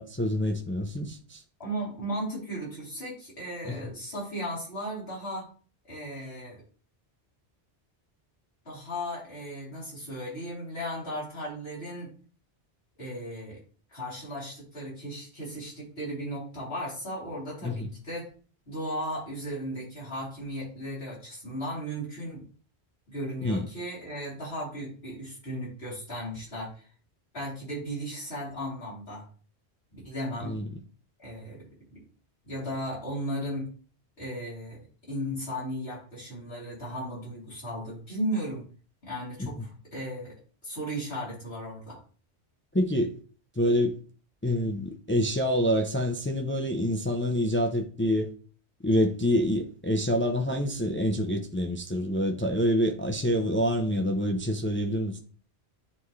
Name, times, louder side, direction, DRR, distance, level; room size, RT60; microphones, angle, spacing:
voice 1, 0.0-1.4 3.6-3.8 17.6-17.9 23.4-23.7 30.4-30.7 39.4-39.7 42.7-43.1 43.6-44.0 44.4-48.3 48.8-55.2, equal, 15° left, 0.5 m, -27 dB
voice 2, 1.6-5.5 5.9-6.6 8.6-12.1 13.0-13.6 13.9-18.3 18.7-22.4 23.1-26.9 27.3-29.3 29.9-30.6 31.2-32.0 32.4-33.7 34.2-38.6 39.0-42.0, equal, 65° left, 3.8 m, -36 dB
9.9 x 3.6 x 3.2 m
omnidirectional pair, 1.1 m